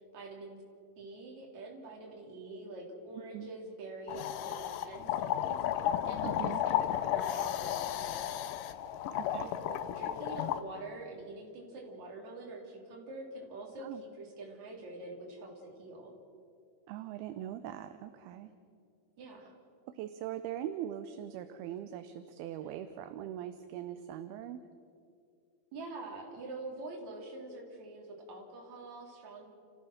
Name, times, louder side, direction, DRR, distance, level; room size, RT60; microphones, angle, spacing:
voice 1, 0.1-0.6 1.0-8.4 9.3-16.1 19.2-19.4 25.7-29.5, right 2 dB, 45° right, -1 dB, 4.1 m, -45 dB
voice 2, 3.2-3.5 6.2-6.6 9.1-9.5 13.8-14.0 16.9-18.5 19.4-19.5 19.9-24.6, right 11 dB, 80° right, 10 dB, 2.5 m, -41 dB
sound 1, 4.1-10.6, left 11 dB, 80° left, 2.0 m, -33 dB
30.0 x 15.0 x 6.5 m, 2.5 s
omnidirectional pair, 4.7 m